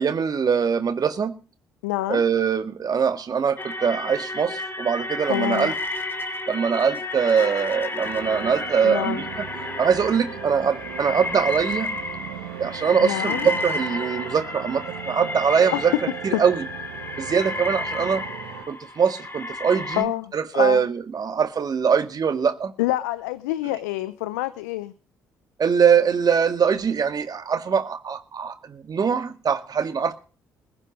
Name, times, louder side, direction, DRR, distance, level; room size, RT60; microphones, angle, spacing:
voice 1, 0.0-1.3 2.1-5.7 6.5-9.2 9.8-11.9 12.6-15.9 16.2-16.6 17.2-18.2 18.7-22.7 25.6-30.1, right 6 dB, 45° right, 8 dB, 1.8 m, -22 dB
voice 2, 1.8-2.2 5.3-5.7 8.8-9.3 13.0-13.5 15.7-16.0 16.3-16.4 20.0-20.8 22.8-24.9, left 16 dB, 85° left, 15 dB, 0.6 m, -26 dB
sound 1, 3.6-20.0, left 2 dB, 25° left, 2.7 m, -32 dB
sound 2, 8.0-18.7, right 12 dB, 75° right, 1.6 m, -38 dB
21.0 x 10.0 x 5.2 m, 0.37 s
hypercardioid pair, 45°, 9 cm